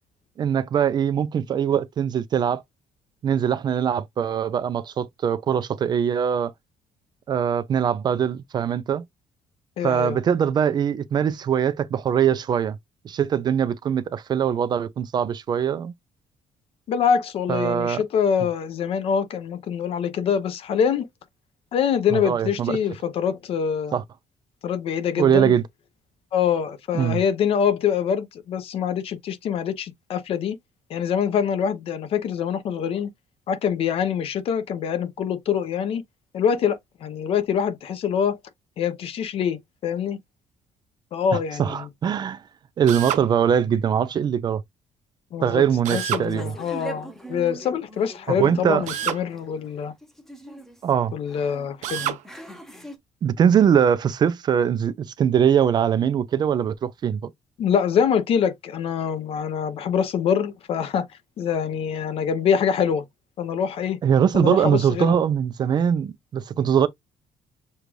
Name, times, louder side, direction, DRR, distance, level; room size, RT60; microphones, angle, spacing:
voice 1, 0.4-2.6 3.2-6.5 7.3-9.0 9.8-12.8 13.0-15.9 17.5-18.0 22.1-22.8 23.9-24.0 25.2-25.6 26.9-27.2 41.6-42.4 42.8-44.6 45.4-46.5 48.3-48.8 50.8-51.1 53.2-57.3 64.0-66.9, right 8 dB, 35° right, 0.4 m, -22 dB
voice 2, 9.8-10.2 16.9-21.1 21.7-24.0 24.6-25.5 26.3-30.6 30.9-33.1 33.5-36.0 36.3-38.4 38.8-40.2 41.1-41.9 45.3-49.9 51.1-52.2 57.6-61.0 61.4-63.0 63.4-64.0 64.3-65.2, left 7 dB, 50° left, 0.8 m, -25 dB
Drill, 42.9-43.3 45.8-46.3 48.9-49.2 51.8-52.2, right 11 dB, 80° right, 0.8 m, -28 dB
sound 1, 46.2-53.0, right 2 dB, 5° left, 0.8 m, -41 dB
6.7 x 2.4 x 3.1 m
cardioid pair, 175°, 12 cm